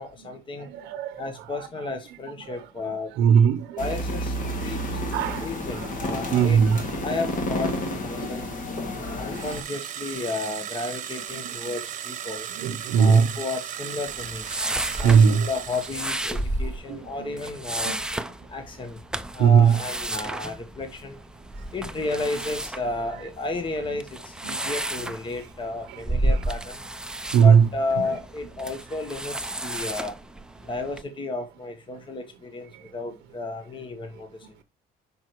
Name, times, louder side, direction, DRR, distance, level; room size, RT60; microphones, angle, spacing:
voice 1, 0.0-0.7 1.2-3.1 3.8-4.3 4.6-5.0 5.4-6.6 7.0-7.7 8.0-8.5 9.2-12.5 13.0-14.5 15.0-18.0 18.5-19.0 19.3-21.2 21.7-26.8 27.4-30.1 30.7-34.3, left 3 dB, 30° left, 1.0 m, -33 dB
voice 2, 0.6-1.2 1.5-1.7 2.5-2.6 3.2-3.8 5.1-5.9 6.3-6.9 9.1-9.5 11.4-11.8 12.6-13.3 15.0-15.5 16.9-17.3 17.8-18.0 19.4-19.8 24.4-24.5 27.2-27.7, right 7 dB, 90° right, 0.7 m, -20 dB
sound 1, 3.8-9.6, left 1 dB, 50° left, 2.1 m, -30 dB
sound 2, 9.3-16.6, right 9 dB, 45° right, 0.9 m, -36 dB
sound 3, 14.1-31.0, right 1 dB, 5° right, 0.4 m, -32 dB
6.1 x 5.3 x 3.0 m
cardioid pair, 110°, 17 cm